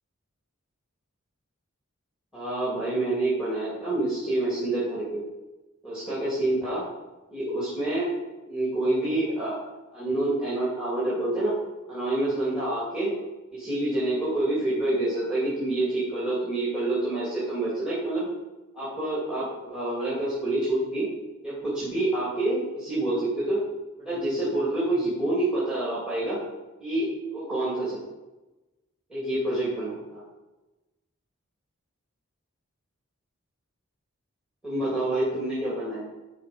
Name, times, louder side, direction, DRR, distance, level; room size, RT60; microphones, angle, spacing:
voice 1, 2.3-5.2 5.8-6.8 7.3-8.1 8.5-9.5 9.9-11.6 11.9-13.1 13.5-18.2 18.7-21.1 21.4-23.6 24.0-26.4 26.8-28.1 29.1-30.2 34.6-36.1, right 2 dB, 5° right, -8 dB, 2.3 m, -27 dB
10.0 x 4.3 x 5.2 m, 1.1 s
head